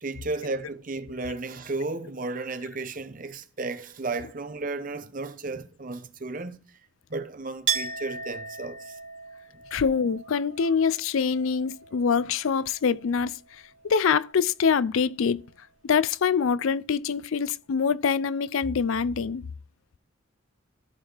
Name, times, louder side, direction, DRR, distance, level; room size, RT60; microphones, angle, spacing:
voice 1, 0.0-6.6 7.1-8.9, right 3 dB, 40° right, 0.8 m, -34 dB
Chink clink, 7.7-13.2 13.5-14.4, right 7 dB, 65° right, 1.6 m, -36 dB
voice 2, 9.7-15.4 15.8-19.4, left 6 dB, 75° left, 0.4 m, -25 dB
14.0 x 4.7 x 4.5 m
head